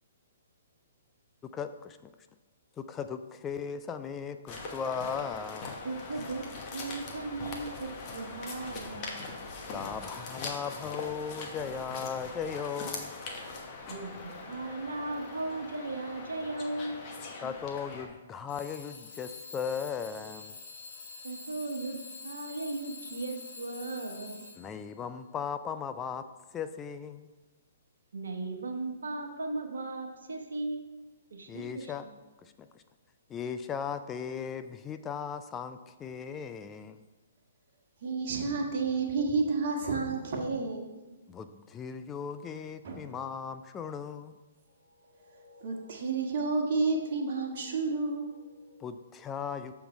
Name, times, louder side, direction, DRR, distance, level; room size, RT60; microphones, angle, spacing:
voice 1, 1.5-2.0 2.8-5.8 9.7-13.1 17.4-20.5 24.6-26.2 26.5-27.3 31.5-32.1 32.4-32.8 33.3-37.0 41.3-44.4 48.8-49.7, left 7 dB, 20° left, 10 dB, 0.3 m, -37 dB
sound 1, 4.5-18.1, left 3 dB, 35° left, 1.1 m, -41 dB
voice 2, 5.8-9.2 13.9-17.0 21.2-22.0 22.2-24.4 28.1-30.8 31.3-32.1, right 2 dB, 75° right, 4 dB, 1.0 m, -37 dB
Alarm / Clock, 13.4-13.6 14.1-14.6 15.1-15.5 16.4-16.5 18.5-24.9, left 4 dB, 55° left, 1.5 m, -47 dB
voice 3, 38.0-40.9 42.8-43.0 45.2-48.7, right 4 dB, 55° right, 1 dB, 1.3 m, -31 dB
6.8 x 3.8 x 5.2 m, 1.2 s
hypercardioid pair, 125°, 0 cm